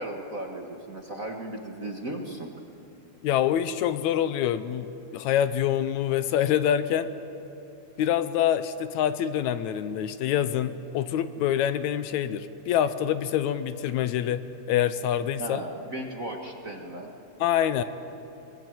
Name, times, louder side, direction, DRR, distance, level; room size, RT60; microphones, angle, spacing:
voice 1, 0.0-2.5 15.4-17.1, right 1 dB, 35° right, 2 dB, 1.5 m, -36 dB
voice 2, 3.2-7.1 8.0-15.6 17.4-17.8, left 10 dB, 80° left, 12 dB, 2.0 m, -26 dB
24.0 x 20.5 x 9.2 m, 2.9 s
omnidirectional pair, 3.4 m